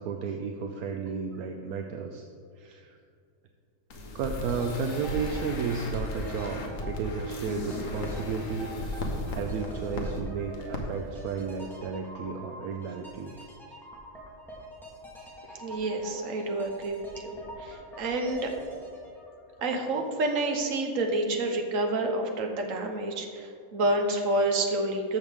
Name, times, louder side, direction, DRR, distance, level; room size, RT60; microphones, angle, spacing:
voice 1, 0.0-2.2 2.6-3.0 4.1-8.7 9.3-13.4, right 5 dB, 75° right, 4 dB, 1.1 m, -33 dB
sound 1, 3.9-10.2 10.5-10.8 11.1-11.2, left 1 dB, 60° left, 1.4 m, -36 dB
sound 2, 4.4-20.3 20.6-20.7, equal, ahead, 1.6 m, -45 dB
voice 2, 15.5-18.5 19.6-25.2, right 2 dB, 60° right, 3 dB, 1.4 m, -29 dB
13.5 x 6.5 x 3.6 m, 2.3 s
omnidirectional pair, 1.6 m